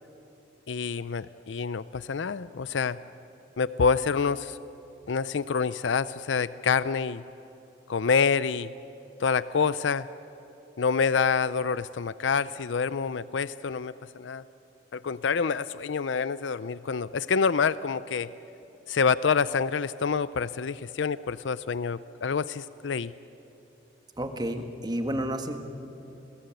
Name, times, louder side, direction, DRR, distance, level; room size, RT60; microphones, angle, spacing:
voice 1, 0.7-3.0 3.6-4.6 5.1-7.2 7.9-8.7 9.2-10.1 10.8-14.4 14.9-18.3 18.9-23.1, left 5 dB, 80° left, 16 dB, 0.5 m, -27 dB
voice 2, 24.2-25.6, right 1 dB, 20° right, 6 dB, 1.7 m, -30 dB
29.5 x 21.5 x 9.1 m, 3.0 s
head